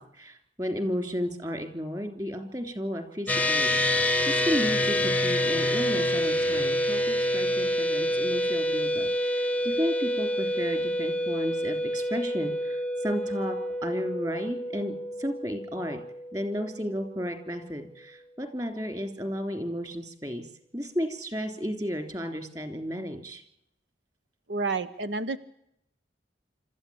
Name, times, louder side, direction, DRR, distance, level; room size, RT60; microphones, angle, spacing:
voice 1, 0.0-13.6 13.8-16.0 16.3-20.4 20.7-23.4, equal, 20° right, 7 dB, 3.3 m, -33 dB
sound 1, 3.3-16.9, left 1 dB, 10° left, 0.8 m, -27 dB
voice 2, 24.5-25.4, right 3 dB, 90° right, 13 dB, 1.0 m, -29 dB
27.0 x 13.5 x 8.7 m, 0.75 s
head